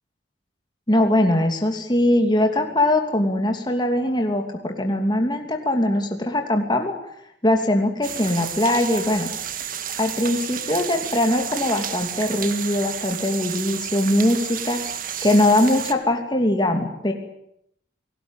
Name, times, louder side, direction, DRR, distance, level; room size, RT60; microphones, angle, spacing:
voice 1, 0.9-6.9 7.4-9.3 10.0-14.8 15.2-17.1, left 1 dB, 25° left, 3 dB, 2.9 m, -21 dB
sound 1, 8.0-15.9, right 9 dB, 50° right, 2.0 m, -31 dB
29.5 x 19.5 x 9.1 m, 0.75 s
head